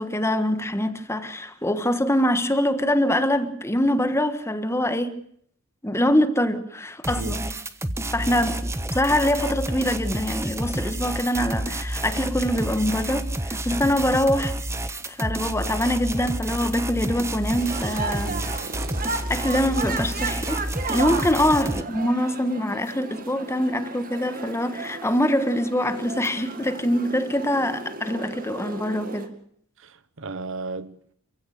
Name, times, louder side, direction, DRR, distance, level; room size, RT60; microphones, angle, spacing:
voice 1, 0.0-5.2 5.8-7.5 8.1-14.6 15.0-18.4 19.3-20.6 20.9-29.3, left 1 dB, 10° left, 1.4 m, -24 dB
sound 1, 7.0-21.8, right 1 dB, 10° right, 1.1 m, -29 dB
sound 2, 17.6-29.3, right 4 dB, 40° right, 2.2 m, -34 dB
voice 2, 18.2-18.6 21.2-21.4 29.8-31.1, right 3 dB, 60° right, 1.0 m, -36 dB
27.5 x 16.0 x 6.6 m
head